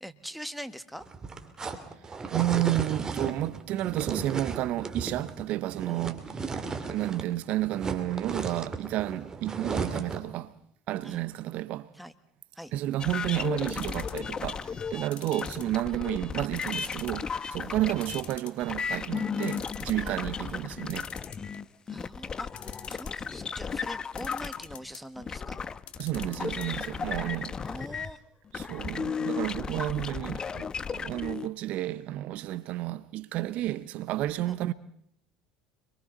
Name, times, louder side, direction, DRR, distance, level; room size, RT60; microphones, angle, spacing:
voice 1, 0.0-1.0 5.9-6.1 11.0-11.2 11.9-12.1 12.5-12.7 14.9-15.3 15.9-16.0 17.6-17.8 20.0-20.2 21.9-25.6 27.1-27.2 27.6-28.2 34.5-34.6, equal, ahead, 1.6 m, -43 dB
sound 1, 1.0-7.3 7.6-10.3, right 4 dB, 25° right, 2.8 m, -35 dB
voice 2, 2.3-10.5 10.9-11.9 12.7-21.1 26.0-27.6 28.5-34.7, right 15 dB, 60° right, 0.9 m, -31 dB
sound 2, 13.0-28.1 28.5-31.5, left 6 dB, 30° left, 0.7 m, -35 dB
sound 3, 13.7-14.4 15.1-16.1 16.6-17.2 17.6-17.7 18.0-18.8 19.2-19.3 19.4-20.0 20.9-21.8 22.5-23.3 24.2-25.0 25.8-26.7 27.0-27.1 27.3-27.4, left 9 dB, 45° left, 1.9 m, -45 dB
30.0 x 23.0 x 4.0 m
hypercardioid pair, 80°, 3 cm